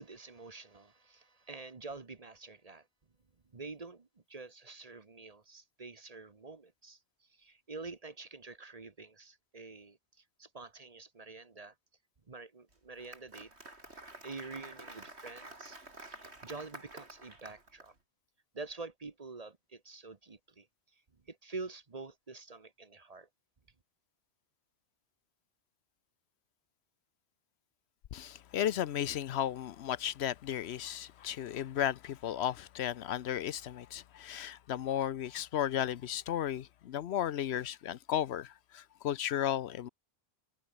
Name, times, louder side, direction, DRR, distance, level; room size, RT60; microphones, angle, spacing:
voice 1, 0.0-2.9 3.5-11.7 12.3-13.5 14.2-17.9 18.5-20.7 21.3-23.3, right 3 dB, 35° right, 1.2 m, -47 dB
Applause, 12.7-17.9, right 2 dB, 80° right, 5.2 m, -50 dB
voice 2, 28.1-39.9, left 10 dB, 75° left, 0.9 m, -34 dB
omnidirectional pair, 1.1 m